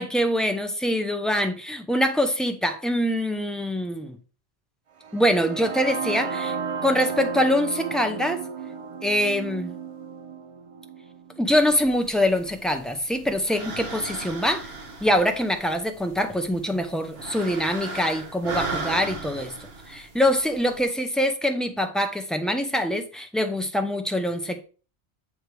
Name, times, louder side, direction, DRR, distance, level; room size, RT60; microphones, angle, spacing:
voice 1, 0.0-4.2 5.1-6.6 6.8-8.4 9.0-9.8 11.4-14.7 15.0-19.5 19.9-24.6, equal, ahead, 0.6 m, -24 dB
sound 1, 5.0-12.9, right 6 dB, 45° right, 0.5 m, -34 dB
sound 2, 11.5-20.8, right 3 dB, 65° right, 1.3 m, -37 dB
7.9 x 3.3 x 4.7 m
omnidirectional pair, 1.1 m